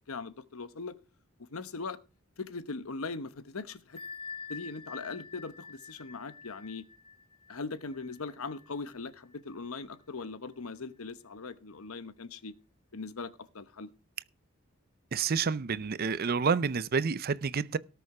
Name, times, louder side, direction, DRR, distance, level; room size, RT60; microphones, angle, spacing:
voice 1, 0.1-0.9 1.5-2.0 2.4-4.0 4.5-6.8 7.5-12.5 12.9-13.9, left 4 dB, 85° left, 1.0 m, -40 dB
Bell, 4.0-9.4, left 5 dB, 25° left, 1.0 m, -47 dB
voice 2, 15.1-17.8, right 5 dB, 45° right, 0.5 m, -29 dB
18.0 x 6.9 x 4.8 m
head